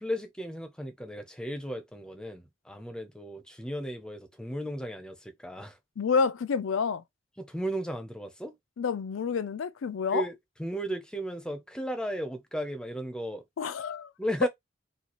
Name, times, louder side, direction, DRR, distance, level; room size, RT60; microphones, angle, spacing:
voice 1, 0.0-5.8 7.4-8.5 10.1-13.4 14.2-14.5, equal, 5° left, 0.6 m, -35 dB
voice 2, 6.0-7.0 8.8-10.3 13.6-14.1 14.4-14.5, left 5 dB, 85° left, 0.4 m, -28 dB
4.0 x 2.4 x 3.0 m
head